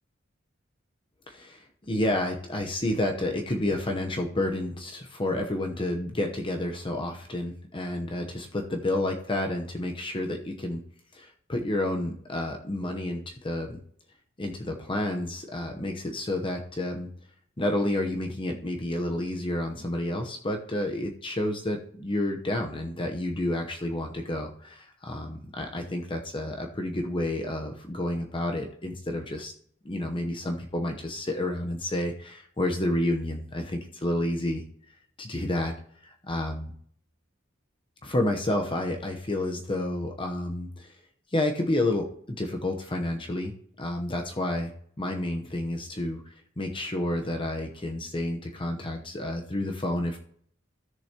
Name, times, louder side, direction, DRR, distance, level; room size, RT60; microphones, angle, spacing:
voice 1, 1.3-10.8 11.1-13.8 14.4-17.1 17.6-29.5 29.8-34.6 35.2-35.7 36.0-36.7 38.0-41.0 41.3-44.7 45.0-50.2, left 1 dB, 25° left, 3 dB, 0.9 m, -30 dB
15.5 x 6.9 x 2.9 m, 0.63 s
head